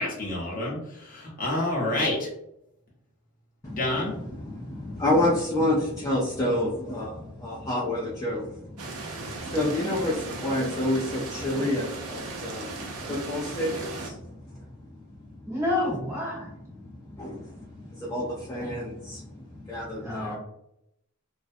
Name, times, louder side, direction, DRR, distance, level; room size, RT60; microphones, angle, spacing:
voice 1, 0.0-2.3 3.8-4.1, left 1 dB, 40° left, -4 dB, 0.8 m, -28 dB
voice 2, 3.6-14.9 15.2-15.4 16.8-20.4, left 1 dB, 15° left, -5 dB, 0.4 m, -29 dB
sound 1, 8.8-14.1, right 3 dB, 80° right, 0.6 m, -37 dB
voice 3, 15.4-16.5 20.0-20.4, left 2 dB, 15° right, -5 dB, 1.0 m, -28 dB
2.5 x 2.1 x 2.5 m, 0.79 s
head